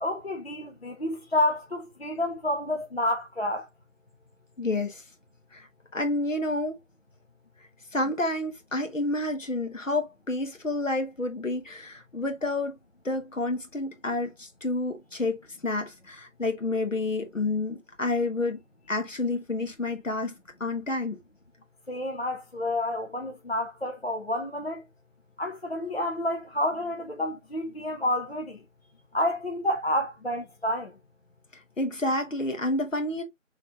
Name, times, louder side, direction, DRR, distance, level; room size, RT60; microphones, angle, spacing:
voice 1, 0.0-3.7 21.9-24.8 25.4-28.6 29.1-30.9, left 1 dB, 50° left, 0.6 m, -29 dB
voice 2, 4.6-5.0 5.5-5.7 5.9-6.8 7.9-12.8 13.0-18.6 18.9-20.3 20.6-21.2 31.8-33.2, left 2 dB, 75° left, 1.4 m, -29 dB
5.1 x 3.2 x 2.4 m
figure-of-eight pair, 180°, 39 cm